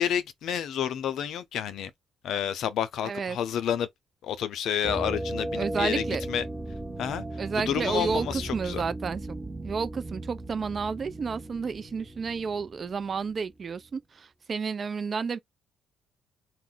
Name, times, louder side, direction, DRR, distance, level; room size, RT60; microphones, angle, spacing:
voice 1, 0.0-1.9 2.2-3.9 4.2-6.5 7.0-8.8, left 9 dB, 75° left, 0.5 m, -30 dB
voice 2, 3.1-3.4 5.6-6.2 7.4-8.3 8.5-9.4 9.6-15.4, right 5 dB, 45° right, 0.4 m, -31 dB
sound 1, 4.8-13.5, right 1 dB, 15° right, 1.2 m, -36 dB
2.4 x 2.1 x 3.7 m
cardioid pair, 90°, 0 cm